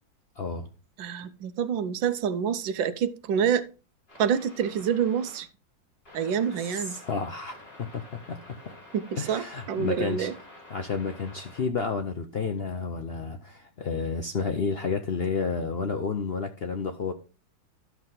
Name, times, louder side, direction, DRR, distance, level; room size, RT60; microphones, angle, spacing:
voice 1, 0.4-0.7 6.6-8.7 9.2-10.3 10.7-17.1, left 4 dB, 80° left, 0.5 m, -31 dB
voice 2, 1.0-3.7 4.2-5.5 6.1-7.0 8.9-10.3, right 7 dB, 90° right, 1.5 m, -27 dB
sound 1, 4.1-5.4 6.0-11.6, left 1 dB, 30° left, 4.4 m, -49 dB
12.0 x 6.1 x 3.7 m
omnidirectional pair, 2.0 m